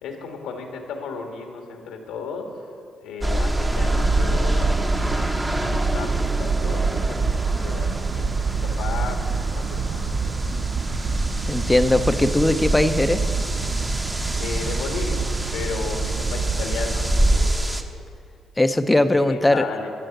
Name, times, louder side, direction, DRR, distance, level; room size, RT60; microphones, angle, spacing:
voice 1, 0.0-2.7 3.0-10.4 14.4-15.2 15.5-17.9 19.0-19.9, left 4 dB, 90° left, 3 dB, 1.6 m, -34 dB
sound 1, 3.2-17.8, right 1 dB, 15° right, 0.9 m, -25 dB
sound 2, 3.7-17.5, right 5 dB, 45° right, 0.5 m, -28 dB
voice 2, 11.5-13.2 18.6-19.6, left 1 dB, 10° left, 10 dB, 0.6 m, -19 dB
12.5 x 5.6 x 9.1 m, 2.4 s
cardioid pair, 90°, 0 cm